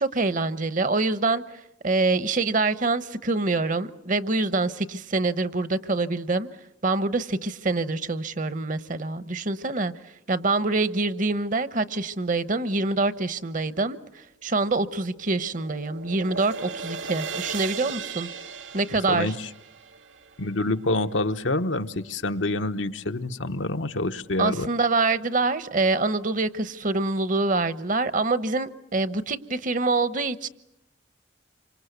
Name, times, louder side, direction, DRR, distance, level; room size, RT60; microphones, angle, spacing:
voice 1, 0.0-1.4 1.8-6.5 6.8-9.9 10.3-14.0 14.4-18.3 18.7-19.3 24.4-30.5, right 3 dB, 45° right, 1.0 m, -25 dB
sound 1, 14.9-21.1, right 5 dB, 85° right, 1.9 m, -37 dB
voice 2, 18.9-19.5 20.4-24.7, left 2 dB, 80° left, 1.1 m, -27 dB
27.5 x 25.0 x 8.1 m
head